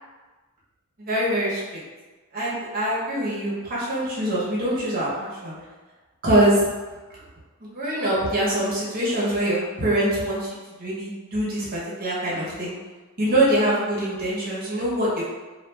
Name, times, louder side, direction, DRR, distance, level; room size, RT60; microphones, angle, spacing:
voice 1, 1.0-1.6 2.3-5.6 6.2-6.7 7.6-12.7 13.2-15.2, right 1 dB, 45° right, -7 dB, 0.9 m, -24 dB
2.3 x 2.3 x 3.2 m, 1.3 s
head